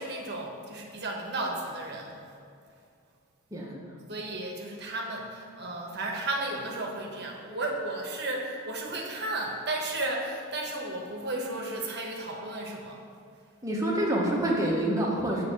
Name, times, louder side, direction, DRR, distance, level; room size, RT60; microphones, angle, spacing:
voice 1, 0.0-2.2 4.1-13.0, right 2 dB, 50° right, 0 dB, 0.9 m, -34 dB
voice 2, 3.5-3.9 13.6-15.5, right 1 dB, 15° right, -3 dB, 0.9 m, -27 dB
6.9 x 3.3 x 6.1 m, 2.3 s
head